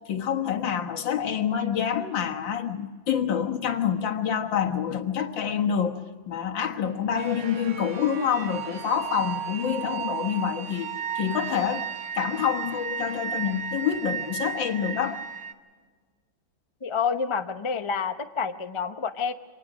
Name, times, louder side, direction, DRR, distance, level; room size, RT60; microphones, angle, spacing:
voice 1, 0.1-10.9 11.2-11.9 12.2-15.2, left 8 dB, 80° left, 4 dB, 2.2 m, -27 dB
sound 1, 7.2-15.5, right 7 dB, 45° right, 1.3 m, -34 dB
voice 2, 16.8-19.3, left 5 dB, 30° left, 7 dB, 0.5 m, -28 dB
24.5 x 19.0 x 6.2 m, 1.5 s
omnidirectional pair, 2.0 m